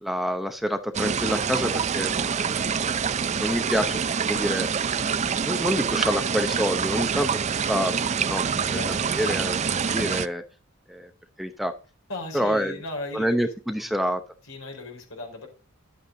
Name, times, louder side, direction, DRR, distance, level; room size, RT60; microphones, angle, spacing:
voice 1, 0.0-2.6 3.4-5.1 5.4-10.4 10.9-11.1 11.4-11.7 12.3-12.7 13.1-14.2, equal, ahead, 7 dB, 0.7 m, -28 dB
sound 1, 0.9-10.3, right 6 dB, 35° right, 0.4 m, -26 dB
voice 2, 8.7-9.3 12.1-13.5 13.8-14.0 14.4-15.5, left 2 dB, 70° left, 2 dB, 4.3 m, -38 dB
11.0 x 8.3 x 3.8 m, 0.33 s
head